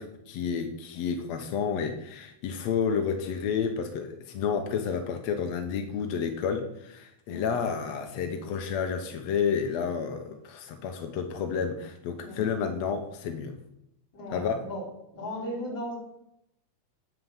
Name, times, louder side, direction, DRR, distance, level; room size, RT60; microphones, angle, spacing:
voice 1, 0.0-13.5 14.3-14.6, left 6 dB, 75° left, 5 dB, 1.5 m, -30 dB
voice 2, 14.1-14.9 15.1-16.0, equal, 30° left, -5 dB, 5.2 m, -36 dB
9.6 x 8.6 x 7.1 m, 0.80 s
omnidirectional pair, 4.5 m